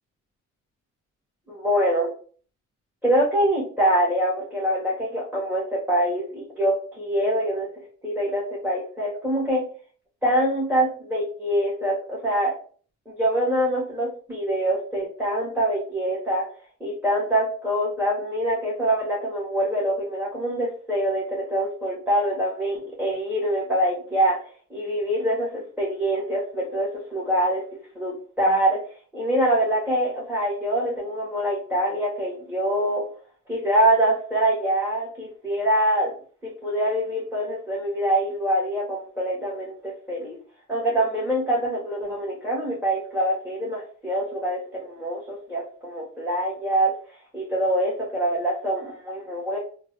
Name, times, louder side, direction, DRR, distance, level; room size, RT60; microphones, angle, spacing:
voice 1, 1.5-2.1 3.0-7.7 8.0-9.7 10.2-12.5 13.1-16.4 16.8-24.4 24.7-27.6 27.9-28.8 29.1-33.0 33.5-36.1 36.4-40.4 40.7-46.9 47.3-49.6, right 1 dB, 5° right, -7 dB, 1.3 m, -24 dB
3.4 x 2.2 x 3.0 m, 0.44 s
cardioid pair, 90°, 30 cm